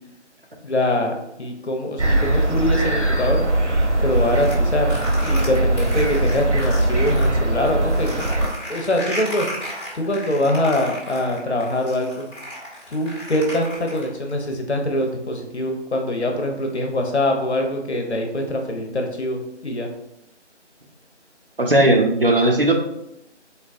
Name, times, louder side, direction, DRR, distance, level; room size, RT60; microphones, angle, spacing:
voice 1, 0.6-3.4 4.0-4.9 5.2-8.3 8.7-9.5 9.9-12.3 12.9-19.9, left 1 dB, 65° left, 3 dB, 0.8 m, -23 dB
sound 1, 2.0-8.5, right 1 dB, 75° right, 0.9 m, -20 dB
sound 2, 4.1-7.3 7.7-14.3, left 1 dB, 25° left, 0.9 m, -34 dB
voice 2, 21.6-22.7, right 1 dB, 50° right, 1 dB, 0.6 m, -16 dB
4.0 x 2.2 x 2.5 m, 0.83 s
figure-of-eight pair, 175°, 36 cm